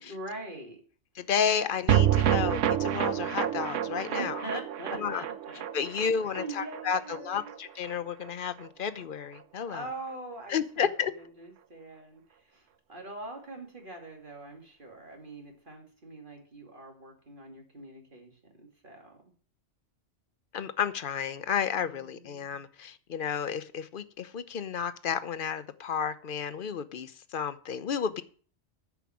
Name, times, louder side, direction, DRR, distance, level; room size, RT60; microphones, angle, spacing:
voice 1, 0.0-0.8 4.1-5.6 6.0-7.5 9.7-18.3 18.6-19.2 21.8-22.5, right 2 dB, 45° right, 2.8 m, -43 dB
voice 2, 1.2-4.3 5.0-5.2 5.7-9.8 10.5-11.1 20.5-28.2, left 7 dB, 50° left, 0.8 m, -32 dB
sound 1, 1.9-8.3 8.6-8.7 9.0-9.1, right 11 dB, 85° right, 1.0 m, -29 dB
10.5 x 6.0 x 7.5 m
omnidirectional pair, 1.2 m